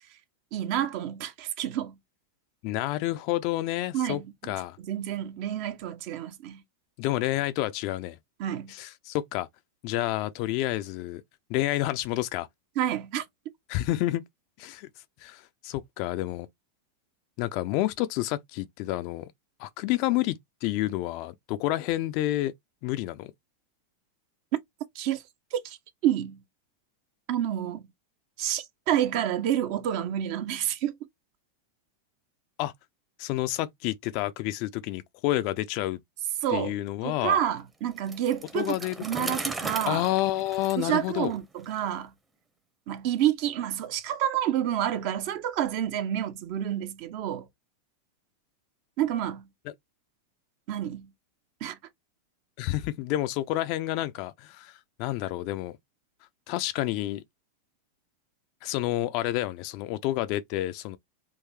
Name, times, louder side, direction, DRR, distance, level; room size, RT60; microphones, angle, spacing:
voice 1, 0.5-2.0 3.9-6.6 8.4-8.7 12.8-13.2 24.9-25.2 25.5-25.8 26.0-26.4 27.3-27.9 28.4-30.9 36.4-36.7 37.0-38.8 39.0-40.0 40.8-42.1 42.9-47.5 49.0-49.5 50.7-51.1 51.6-51.8, right 11 dB, 45° right, 0.7 m, -29 dB
voice 2, 2.6-4.8 7.0-8.2 8.7-9.5 9.8-11.2 11.5-12.5 13.7-14.2 14.6-14.9 15.2-16.5 17.4-19.3 19.6-22.5 22.8-23.3 32.6-32.7 33.2-36.0 36.5-37.4 38.5-39.4 39.9-41.3 52.6-55.8 56.5-57.2 58.6-61.0, left 15 dB, 45° left, 0.4 m, -29 dB
Bicycle, 38.0-41.8, right 3 dB, 10° right, 0.8 m, -37 dB
3.8 x 2.6 x 3.1 m
figure-of-eight pair, 90°, 0 cm